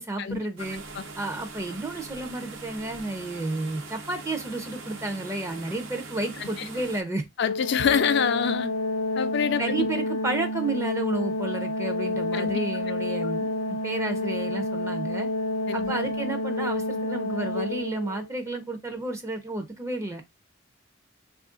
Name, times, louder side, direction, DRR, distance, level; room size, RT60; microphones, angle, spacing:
voice 1, 0.0-0.8 1.2-7.2 9.6-15.3 15.7-20.2, right 2 dB, 15° right, 0.4 m, -31 dB
sound 1, 0.6-7.0, right 3 dB, 75° right, 0.8 m, -42 dB
Organ, 7.4-18.3, left 1 dB, 80° left, 0.7 m, -29 dB
voice 2, 7.4-8.7 9.2-9.9 12.3-12.6 15.7-15.9, left 7 dB, 60° left, 0.3 m, -25 dB
3.0 x 2.4 x 3.6 m
head